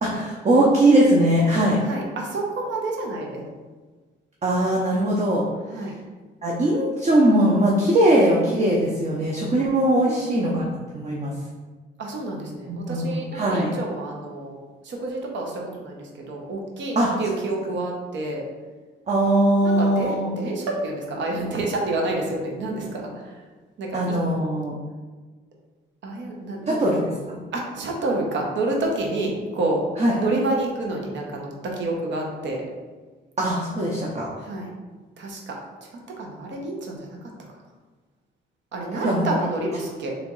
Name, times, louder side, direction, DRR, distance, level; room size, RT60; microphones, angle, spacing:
voice 1, 0.0-1.8 4.4-5.4 6.4-11.3 12.7-13.7 17.0-17.1 19.1-20.3 23.9-24.8 26.7-27.4 30.0-30.1 33.4-34.3 38.9-39.2 39.6-39.7, right 1 dB, 35° right, -3 dB, 0.7 m, -20 dB
voice 2, 1.9-3.4 5.7-5.9 10.0-10.6 12.0-14.5 14.8-18.4 19.6-23.3 23.8-24.2 26.0-26.9 27.5-29.8 30.2-32.6 34.4-34.7 35.2-35.6 36.2-37.2 38.7-40.1, right 2 dB, 70° right, 0 dB, 0.9 m, -29 dB
3.3 x 3.0 x 3.8 m, 1.3 s
cardioid pair, 90°, 20 cm